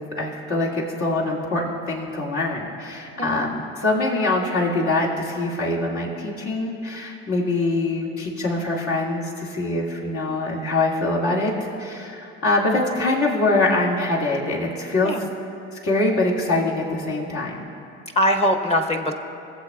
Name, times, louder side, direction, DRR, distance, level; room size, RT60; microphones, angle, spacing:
voice 1, 0.0-15.1 15.8-17.7, left 2 dB, 60° left, -4 dB, 2.2 m, -24 dB
voice 2, 3.2-3.5 15.0-15.2 18.2-19.1, equal, 20° left, 4 dB, 1.0 m, -21 dB
20.5 x 7.8 x 2.4 m, 2.7 s
hypercardioid pair, 70°, 32 cm